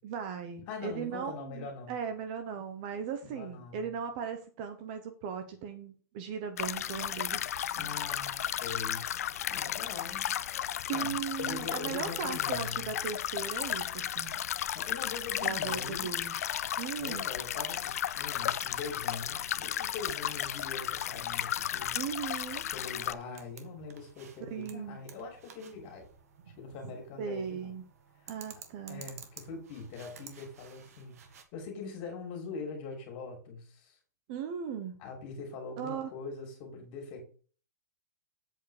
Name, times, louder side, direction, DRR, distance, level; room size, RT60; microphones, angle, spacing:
voice 1, 0.0-7.4 7.7-7.9 10.8-14.4 15.4-16.3 16.8-17.3 21.9-22.7 24.4-25.0 27.2-27.8 28.3-29.0 34.3-35.0 35.8-36.1, right 7 dB, 30° right, 7 dB, 0.8 m, -38 dB
voice 2, 0.7-2.0 3.2-3.9 7.8-9.1 9.5-10.4 10.9-12.9 14.7-16.1 17.0-22.0 22.7-26.0 26.6-27.7 28.9-31.2 31.5-34.0 35.0-37.2, left 4 dB, 25° left, 1 dB, 2.9 m, -42 dB
sound 1, 6.6-23.1, left 10 dB, 60° left, 0.5 m, -34 dB
sound 2, 23.1-31.4, right 7 dB, 60° right, 1.6 m, -53 dB
8.1 x 4.6 x 6.5 m, 0.40 s
hypercardioid pair, 175°, 9 cm